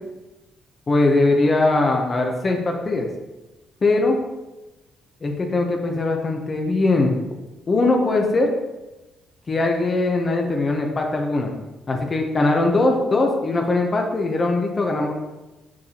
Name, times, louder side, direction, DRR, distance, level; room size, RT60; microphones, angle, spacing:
voice 1, 0.9-3.1 3.8-4.2 5.2-7.2 7.7-8.5 9.5-11.5 11.9-15.1, left 2 dB, 35° left, 1 dB, 0.9 m, -20 dB
6.3 x 6.0 x 2.9 m, 1.1 s
cardioid pair, 90°, 0 cm